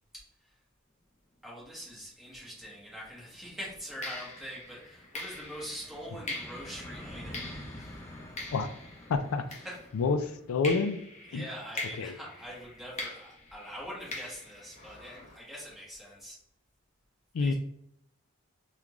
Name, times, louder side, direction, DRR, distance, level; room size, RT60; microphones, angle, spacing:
voice 1, 1.4-7.5 7.8-8.0 9.6-9.8 11.3-16.4 17.4-17.5, equal, ahead, -6 dB, 1.3 m, -43 dB
sound 1, 2.3-13.7, left 1 dB, 15° left, 0.4 m, -50 dB
sound 2, 2.9-3.1 4.0-10.2 10.6-15.4, left 2 dB, 35° left, 0.8 m, -43 dB
voice 2, 9.1-9.4 9.9-11.0 11.3-11.5 12.0-12.1 17.3-17.5, left 4 dB, 75° left, 9 dB, 0.4 m, -28 dB
3.6 x 2.3 x 3.0 m, 0.73 s
head